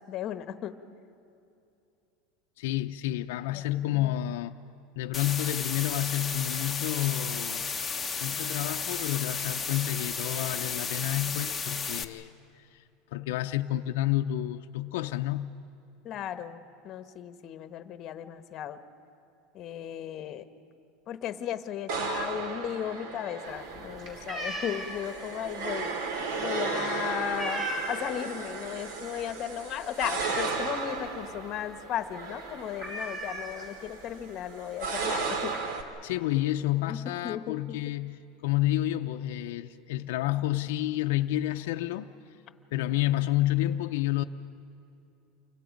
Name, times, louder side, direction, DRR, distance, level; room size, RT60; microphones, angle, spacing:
voice 1, 0.1-0.7 3.5-4.1 16.0-18.8 19.5-20.4 21.1-25.9 26.3-35.5 36.9-37.8, left 10 dB, 35° left, 1.0 m, -36 dB
voice 2, 2.6-4.5 5.0-7.7 8.2-12.8 13.1-15.6 36.0-42.1 42.7-44.2, left 14 dB, 75° left, 0.5 m, -30 dB
sound 1, 5.1-12.0, left 5 dB, 10° left, 0.8 m, -33 dB
sound 2, 21.9-35.8, right 4 dB, 70° right, 2.2 m, -35 dB
sound 3, 23.5-28.2 28.6-28.9 29.2-29.3 29.6-31.0 31.4-31.5 31.7-32.0 32.2-32.3 32.8-34.0 34.8-34.9 35.1-35.6, right 1 dB, 35° right, 5.8 m, -37 dB
28.5 x 24.5 x 5.2 m
supercardioid pair, 155°, 0 cm